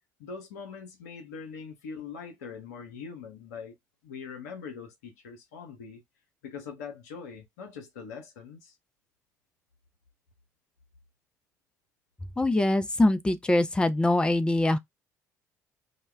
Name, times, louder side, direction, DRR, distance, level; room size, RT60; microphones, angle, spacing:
voice 1, 0.2-3.7 4.0-6.0 6.4-8.7, left 6 dB, 75° left, 0.6 m, -42 dB
voice 2, 12.4-14.8, left 1 dB, 10° left, 0.4 m, -23 dB
2.1 x 2.1 x 3.3 m
figure-of-eight pair, 50°, 9 cm